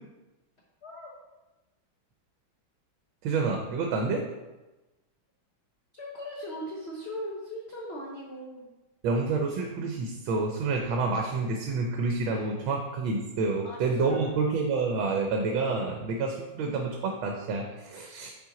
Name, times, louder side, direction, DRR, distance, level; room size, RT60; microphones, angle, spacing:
voice 1, 0.8-1.1 5.9-8.7 12.3-12.5 13.6-14.4, equal, 65° left, -3 dB, 0.6 m, -39 dB
voice 2, 3.2-4.2 9.0-18.3, right 4 dB, 80° right, 2 dB, 1.4 m, -28 dB
5.7 x 4.5 x 3.7 m, 1.1 s
omnidirectional pair, 2.2 m